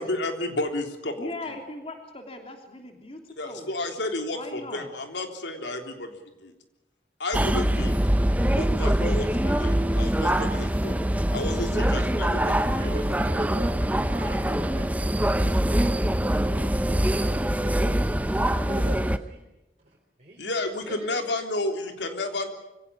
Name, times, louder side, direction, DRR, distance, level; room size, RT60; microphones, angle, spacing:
voice 1, 0.0-1.6 3.4-6.1 6.4-6.5 7.2-8.0 8.5-11.0 11.3-13.0 20.4-22.5, left 2 dB, 85° left, 5 dB, 3.5 m, -31 dB
voice 2, 1.2-3.7 4.3-4.9, left 2 dB, 30° left, 4 dB, 3.1 m, -39 dB
sound 1, 7.3-19.2, right 1 dB, 10° right, 0.7 m, -24 dB
voice 3, 12.4-15.4 15.8-16.4 17.0-19.4 19.8-20.4 20.9-21.2, right 1 dB, 40° right, -1 dB, 3.7 m, -42 dB
24.5 x 17.0 x 10.0 m, 0.99 s
head